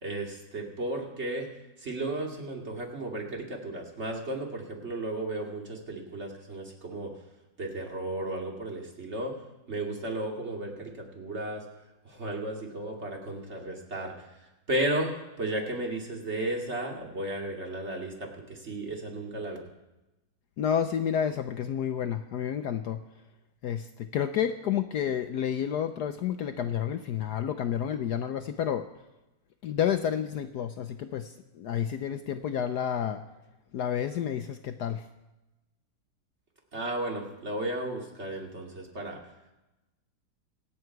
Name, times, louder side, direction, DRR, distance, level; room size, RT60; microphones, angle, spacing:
voice 1, 0.0-1.5 1.8-7.1 7.6-9.4 9.7-11.7 12.0-14.3 14.7-19.6 36.7-39.2, right 1 dB, 30° right, 1 dB, 2.6 m, -34 dB
voice 2, 20.6-23.0 23.6-23.9 24.1-28.9 29.6-33.2 33.7-35.0, left 9 dB, 70° left, 8 dB, 1.0 m, -30 dB
25.5 x 8.9 x 4.6 m, 1.0 s
omnidirectional pair, 2.3 m